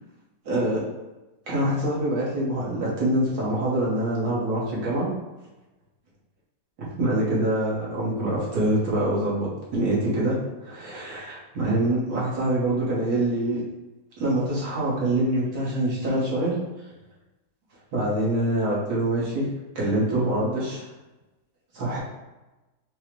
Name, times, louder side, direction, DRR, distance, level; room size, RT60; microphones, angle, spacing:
voice 1, 0.5-0.8 1.5-5.1 6.8-13.6 14.2-16.6 17.9-19.5 19.8-20.8 21.7-22.0, right 1 dB, 65° right, -7 dB, 1.8 m, -25 dB
5.5 x 2.2 x 3.1 m, 1.1 s
omnidirectional pair, 1.8 m